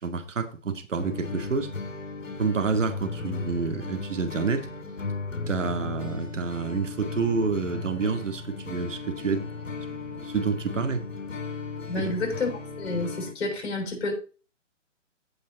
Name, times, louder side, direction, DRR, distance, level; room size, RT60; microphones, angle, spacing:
voice 1, 0.0-1.7 2.4-4.7 5.5-9.5 10.2-11.0 12.0-12.1, right 5 dB, 75° right, 2.2 m, -28 dB
sound 1, 1.0-13.3, left 4 dB, 90° left, 2.6 m, -36 dB
voice 2, 11.9-12.5 12.8-14.1, left 2 dB, 55° left, 7.1 m, -29 dB
16.0 x 5.6 x 4.1 m
hypercardioid pair, 150°, 38 cm